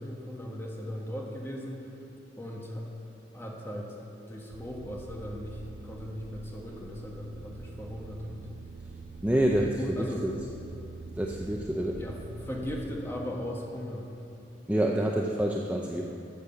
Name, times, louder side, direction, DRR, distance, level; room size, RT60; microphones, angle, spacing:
voice 1, 0.0-1.8 2.4-2.8 3.3-3.9 4.3-8.4 9.6-10.3 12.0-14.0, equal, 15° left, -2 dB, 1.5 m, -38 dB
sound 1, 4.5-13.1, right 3 dB, 65° right, 0.4 m, -45 dB
voice 2, 9.2-10.3 11.2-12.0 14.7-16.1, right 1 dB, 10° right, -1 dB, 0.6 m, -27 dB
13.0 x 6.6 x 7.0 m, 2.7 s
head